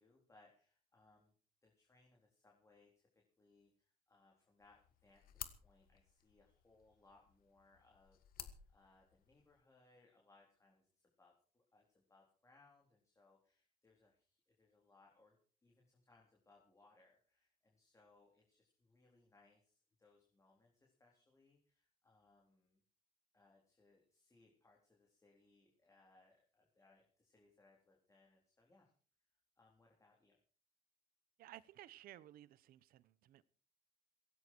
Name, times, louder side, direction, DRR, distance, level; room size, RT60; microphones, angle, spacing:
voice 1, 0.0-1.3 1.6-3.1 3.4-10.9 11.2-22.8 23.3-28.9 29.6-30.4, left 3 dB, 20° left, -1 dB, 3.8 m, -70 dB
sound 1, 4.6-9.6, left 12 dB, 90° left, 1.6 m, -55 dB
voice 2, 31.4-33.4, right 13 dB, 90° right, 19 dB, 0.9 m, -57 dB
16.5 x 16.0 x 4.6 m, 0.41 s
cardioid pair, 130°, 15 cm